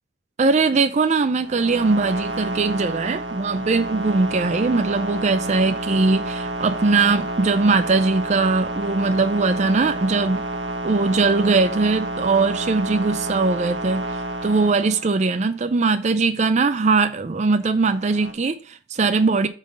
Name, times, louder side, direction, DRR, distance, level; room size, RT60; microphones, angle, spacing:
voice 1, 0.4-10.4 10.8-19.5, right 3 dB, 35° right, 0.4 m, -20 dB
sound 1, 1.3-15.5 17.7-18.3, right 2 dB, 65° right, 1.1 m, -29 dB
7.3 x 3.8 x 5.2 m
head